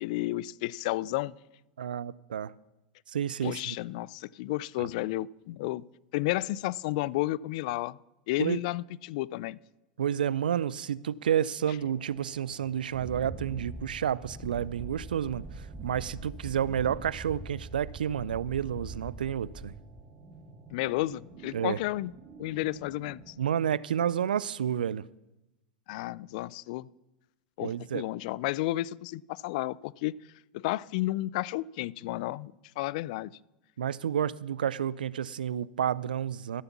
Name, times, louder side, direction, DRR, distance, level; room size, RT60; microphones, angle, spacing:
voice 1, 0.0-1.3 3.4-5.8 6.1-8.0 8.3-9.6 20.7-22.1 22.4-23.3 25.9-26.9 27.6-30.2 30.5-33.3, left 17 dB, 55° left, 0.3 m, -32 dB
voice 2, 1.8-2.5 3.1-3.8 4.8-4.9 8.4-8.6 10.0-19.7 21.5-21.8 23.4-25.0 27.6-28.0 33.8-36.6, right 9 dB, 80° right, 0.4 m, -30 dB
sound 1, 11.8-23.3, right 4 dB, 45° right, 2.2 m, -50 dB
Wind, 12.9-20.1, right 2 dB, 15° right, 1.5 m, -43 dB
13.5 x 7.0 x 7.1 m
hypercardioid pair, 95°, 5 cm